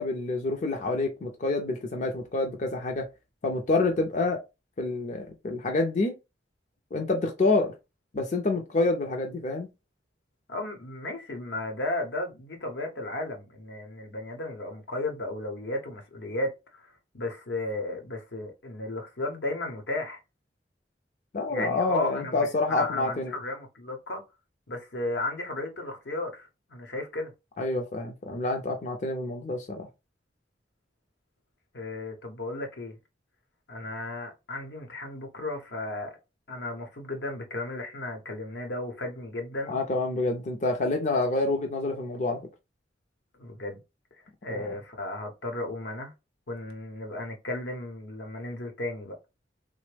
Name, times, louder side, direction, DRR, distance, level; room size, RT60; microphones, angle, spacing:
voice 1, 0.0-3.1 3.4-4.4 4.8-6.2 6.9-7.8 8.1-9.7 21.3-23.3 27.6-29.9 39.7-42.4 44.5-44.7, left 2 dB, 45° left, 0.5 m, -27 dB
voice 2, 10.5-20.2 21.5-24.2 24.7-27.3 31.7-32.9 33.7-36.2 36.5-39.8 43.4-43.8 44.4-46.1 46.5-49.2, left 2 dB, 85° left, 0.9 m, -34 dB
3.3 x 2.0 x 3.3 m
head